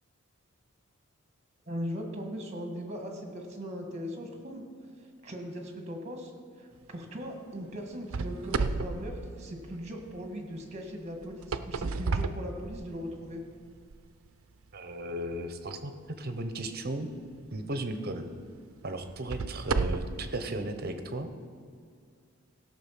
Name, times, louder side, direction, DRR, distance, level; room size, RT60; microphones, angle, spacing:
voice 1, 1.7-4.6 5.0-6.3 6.6-13.4, equal, 30° right, 3 dB, 1.7 m, -39 dB
sound 1, 8.1-10.1 11.2-13.2 13.8-13.9 14.6-14.7 17.3-17.5 18.1-18.2 19.0-20.3, right 4 dB, 80° right, 0.5 m, -32 dB
voice 2, 14.7-15.9 16.2-17.1 17.5-18.3 18.8-21.3, right 1 dB, 50° right, 8 dB, 0.9 m, -35 dB
16.0 x 6.6 x 5.8 m, 2.2 s
head